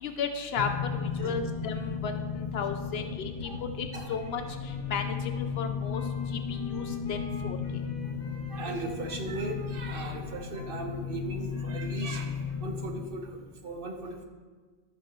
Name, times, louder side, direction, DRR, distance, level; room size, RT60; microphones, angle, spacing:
voice 1, 0.0-3.5 3.8-7.6, left 6 dB, 75° left, 6 dB, 0.8 m, -35 dB
sound 1, 0.6-13.1, left 6 dB, 45° left, 0.6 m, -35 dB
Wind instrument woodwind instrument, 4.1-13.1, left 1 dB, 60° left, 1.6 m, -51 dB
voice 2, 8.5-14.2, right 2 dB, 60° right, 3 dB, 1.1 m, -38 dB
13.5 x 5.9 x 3.0 m, 1.4 s
omnidirectional pair, 1.1 m